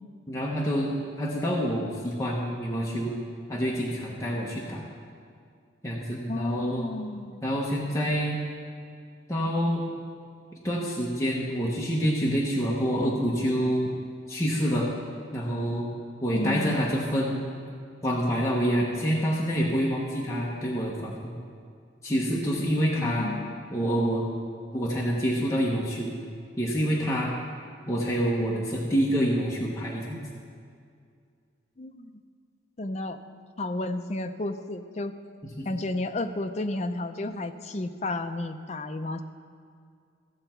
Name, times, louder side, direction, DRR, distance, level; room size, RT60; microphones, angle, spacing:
voice 1, 0.3-3.1 3.5-4.9 5.8-6.9 7.4-8.4 9.3-9.9 10.6-13.9 14.3-14.9 15.3-15.9 16.2-17.5 18.0-21.3 22.0-23.3 23.7-24.2 24.7-26.1 26.6-27.3 27.9-30.2 35.6-35.7, equal, 15° left, -5 dB, 1.0 m, -27 dB
voice 2, 6.3-7.4 16.3-16.9 23.0-23.6 31.8-32.1 32.8-33.2 33.6-35.1 35.6-39.2, left 2 dB, 35° left, 7 dB, 0.5 m, -32 dB
15.5 x 6.9 x 4.5 m, 2.2 s
head